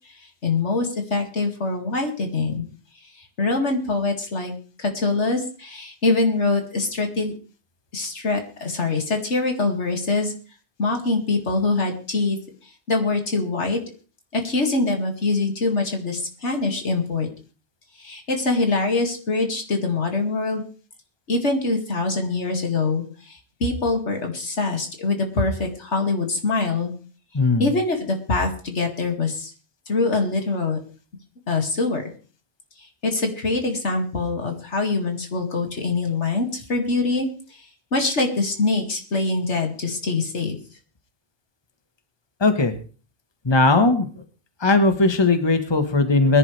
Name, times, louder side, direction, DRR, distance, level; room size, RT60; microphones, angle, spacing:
voice 1, 0.4-2.7 3.2-4.5 4.8-7.3 7.9-10.4 10.8-12.4 12.9-13.8 14.3-17.3 18.0-20.6 21.3-26.9 27.6-29.5 29.9-30.8 31.5-32.0 33.0-37.3 37.9-40.6, left 3 dB, 85° left, 3 dB, 2.6 m, -24 dB
voice 2, 27.3-27.7 42.4-42.7 43.4-44.1 44.6-46.4, left 3 dB, 25° left, 8 dB, 1.4 m, -18 dB
22.0 x 11.0 x 3.3 m, 0.37 s
omnidirectional pair, 1.2 m